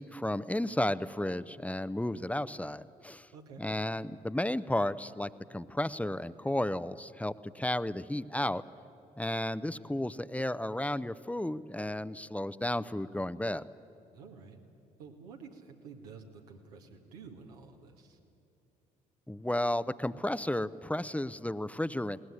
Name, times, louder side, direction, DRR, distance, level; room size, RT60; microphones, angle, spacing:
voice 1, 0.0-3.3 3.6-8.6 9.2-13.7 19.3-22.2, left 1 dB, 5° left, 15 dB, 0.8 m, -33 dB
voice 2, 3.3-3.6 14.1-14.6 15.0-18.2, right 5 dB, 85° right, 2 dB, 2.1 m, -50 dB
21.0 x 19.5 x 9.8 m, 2.8 s
hypercardioid pair, 45°, 19 cm